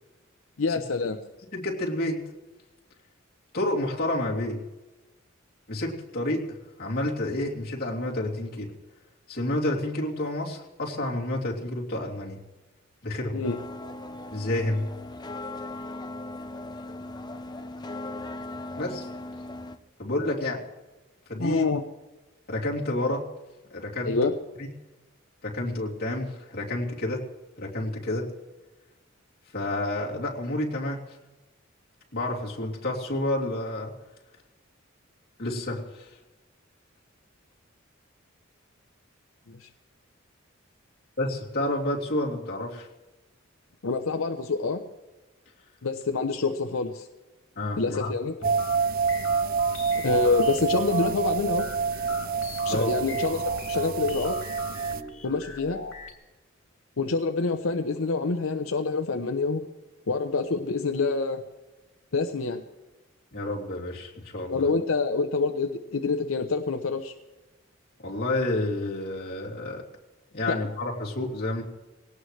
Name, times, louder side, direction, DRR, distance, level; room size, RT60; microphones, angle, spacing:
voice 1, 0.6-1.2 13.3-13.6 21.4-21.8 24.0-24.3 39.5-39.7 43.8-44.8 45.8-47.1 47.8-48.3 50.0-51.7 52.6-54.4 55.2-55.8 57.0-59.7 60.1-61.4 62.1-62.6 64.5-67.1 70.5-70.6, left 4 dB, 85° left, 6 dB, 0.8 m, -26 dB
voice 2, 1.5-2.2 3.5-4.6 5.7-8.7 9.3-12.4 13.0-13.5 14.3-14.9 18.8-19.1 20.0-20.6 21.3-21.7 22.5-23.2 23.7-24.2 24.6-24.7 25.4-27.2 27.6-28.3 29.5-31.0 32.1-33.9 35.4-36.1 41.2-42.9 47.6-48.1 48.4-48.5 52.7-52.9 63.3-64.6 68.0-69.8 70.3-71.6, left 1 dB, 50° left, -3 dB, 3.0 m, -29 dB
sound 1, 13.4-19.8, left 2 dB, 20° left, 0.7 m, -38 dB
sound 2, 48.4-56.1, left 4 dB, 70° left, 2.9 m, -41 dB
sound 3, 48.4-55.0, right 5 dB, 45° right, 0.4 m, -27 dB
20.5 x 17.5 x 3.3 m, 1.1 s
head